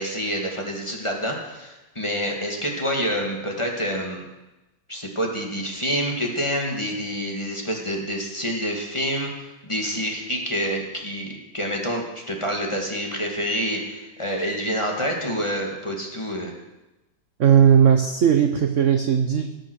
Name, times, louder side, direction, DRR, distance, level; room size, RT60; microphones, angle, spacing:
voice 1, 0.0-4.2 4.9-9.3 9.6-16.5, equal, 15° left, 0 dB, 2.2 m, -27 dB
voice 2, 17.4-19.6, right 8 dB, 55° right, 6 dB, 0.9 m, -17 dB
17.5 x 9.0 x 6.4 m, 1.0 s
omnidirectional pair, 2.1 m